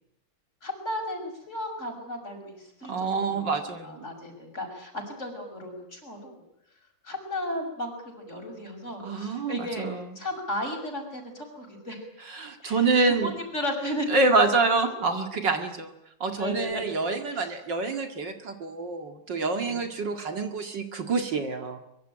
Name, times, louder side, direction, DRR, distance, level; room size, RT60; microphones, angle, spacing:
voice 1, 0.6-3.4 3.8-6.4 7.0-9.9 10.1-12.0 12.6-12.9 13.2-14.1 16.4-16.8 17.3-17.5 19.6-19.8, left 1 dB, 35° left, 4 dB, 6.6 m, -35 dB
voice 2, 2.9-4.1 9.0-10.2 12.3-13.3 14.1-15.9 16.2-21.8, right 3 dB, 60° right, 6 dB, 2.7 m, -27 dB
24.0 x 22.5 x 9.0 m, 0.78 s
omnidirectional pair, 2.2 m